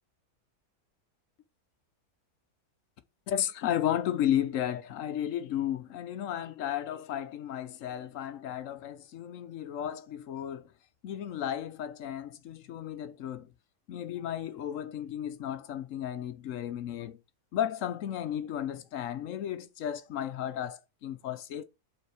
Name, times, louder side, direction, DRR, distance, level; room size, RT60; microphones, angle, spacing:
voice 1, 3.3-10.7 11.0-13.5 13.9-17.2 17.5-21.6, left 10 dB, 65° left, 0.9 m, -33 dB
5.6 x 4.1 x 4.7 m
omnidirectional pair, 1.6 m